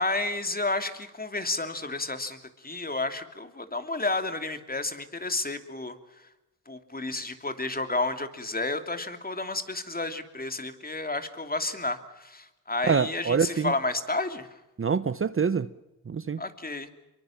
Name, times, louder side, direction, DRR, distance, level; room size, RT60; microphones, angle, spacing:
voice 1, 0.0-6.3 6.7-14.6 16.4-16.9, left 2 dB, 25° left, 2.9 m, -31 dB
voice 2, 12.8-13.7 14.8-15.7 16.1-16.4, right 6 dB, 35° right, 0.9 m, -25 dB
25.0 x 23.0 x 7.3 m
cardioid pair, 60°, 38 cm